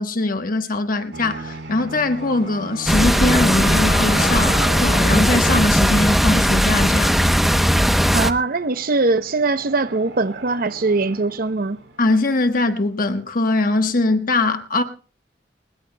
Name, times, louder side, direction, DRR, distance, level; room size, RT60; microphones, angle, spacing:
voice 1, 0.0-7.1 12.0-14.8, left 2 dB, 55° left, 1.2 m, -21 dB
sound 1, 1.1-13.2, right 2 dB, 90° right, 4.2 m, -40 dB
sound 2, 2.0-5.8, left 3 dB, 85° left, 1.7 m, -33 dB
sound 3, 2.9-8.3, equal, ahead, 0.8 m, -17 dB
voice 2, 8.1-11.8, right 3 dB, 55° right, 0.7 m, -21 dB
21.5 x 20.5 x 2.2 m
head